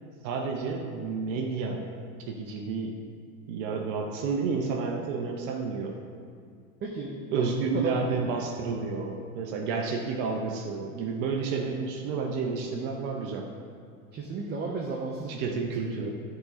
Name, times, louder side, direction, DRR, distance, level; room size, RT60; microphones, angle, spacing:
voice 1, 0.2-1.9 2.3-3.0 3.5-6.0 7.3-13.5 15.4-16.1, right 4 dB, 55° right, 2 dB, 0.8 m, -30 dB
voice 2, 6.8-8.0 14.1-15.5 15.8-16.1, right 4 dB, 25° right, -2 dB, 0.7 m, -34 dB
9.0 x 3.9 x 4.0 m, 2.2 s
hypercardioid pair, 100°, 43 cm